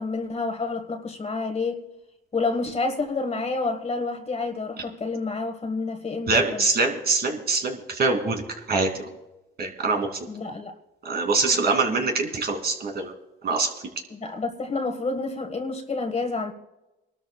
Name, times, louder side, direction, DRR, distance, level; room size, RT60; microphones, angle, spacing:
voice 1, 0.0-1.9 2.3-6.6 10.3-10.7 14.1-16.5, left 3 dB, 30° left, 1.5 m, -29 dB
voice 2, 6.3-8.4 8.7-8.9 9.6-10.1 11.0-13.1 13.4-13.7, right 3 dB, 55° right, 2.8 m, -23 dB
26.5 x 12.5 x 2.3 m
cardioid pair, 90°, 20 cm